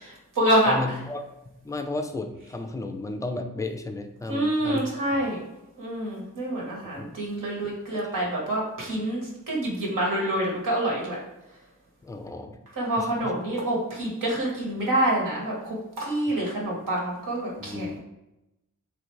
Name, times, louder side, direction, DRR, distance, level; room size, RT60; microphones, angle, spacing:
voice 1, 0.0-0.7 4.3-5.4 5.8-11.2 12.7-18.0, right 1 dB, 75° right, -3 dB, 1.2 m, -27 dB
voice 2, 0.7-5.2 7.0-7.1 7.6-7.7 8.0-8.3 12.0-12.6 13.0-13.3 17.6-18.0, left 2 dB, 10° left, 6 dB, 0.4 m, -34 dB
3.1 x 2.5 x 3.0 m, 0.91 s
cardioid pair, 45°, 32 cm